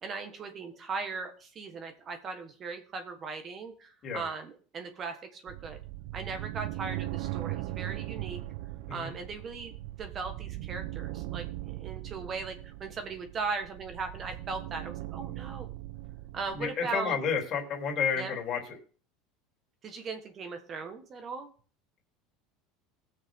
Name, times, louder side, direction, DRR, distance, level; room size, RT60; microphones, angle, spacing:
voice 1, 0.0-5.8 6.1-8.4 8.9-15.7 16.3-17.2 18.1-18.4 19.8-21.5, right 4 dB, 30° right, 6 dB, 1.5 m, -38 dB
sound 1, 5.5-16.7, right 17 dB, 70° right, 0.7 m, -39 dB
voice 2, 16.6-18.6, left 6 dB, 40° left, 1 dB, 3.2 m, -30 dB
19.5 x 6.6 x 3.7 m, 0.41 s
supercardioid pair, 135°, 0 cm